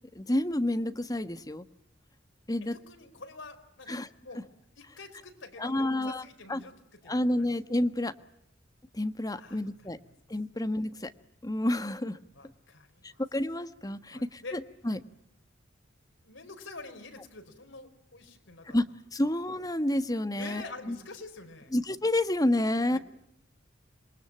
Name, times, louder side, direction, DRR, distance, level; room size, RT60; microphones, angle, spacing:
voice 1, 0.1-1.6 2.5-2.8 3.9-4.1 5.6-6.2 6.5-6.6 7.1-8.1 8.9-10.0 10.3-11.1 11.4-12.2 13.0-14.6 14.8-15.0 18.7-18.8 19.1-20.6 20.9-21.0 21.7-23.0, left 1 dB, 20° left, 10 dB, 1.4 m, -29 dB
voice 2, 2.7-4.5 4.7-7.6 9.3-10.1 10.8-10.9 12.3-13.2 14.1-15.0 16.2-18.8 20.3-21.7 22.9-23.0, left 3 dB, 85° left, 6 dB, 4.9 m, -47 dB
27.5 x 22.5 x 8.9 m, 0.77 s
head